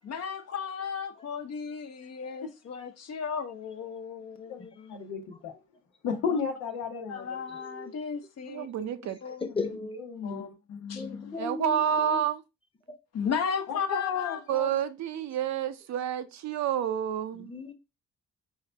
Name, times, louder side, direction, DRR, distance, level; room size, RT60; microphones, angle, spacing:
voice 1, 0.0-5.0 6.3-6.4 7.1-8.7 9.2-9.8 10.2-11.4 13.1-14.4, left 6 dB, 55° left, 1.0 m, -35 dB
voice 2, 4.9-5.6 6.0-7.4 9.5-10.5 13.7-14.7, left 5 dB, 90° left, 1.1 m, -33 dB
voice 3, 8.5-9.2 11.4-12.4 14.5-17.6, right 9 dB, 65° right, 0.6 m, -29 dB
voice 4, 10.9-12.2 17.5-17.7, left 3 dB, 15° left, 1.0 m, -35 dB
5.6 x 2.7 x 3.3 m
cardioid pair, 90°, 30 cm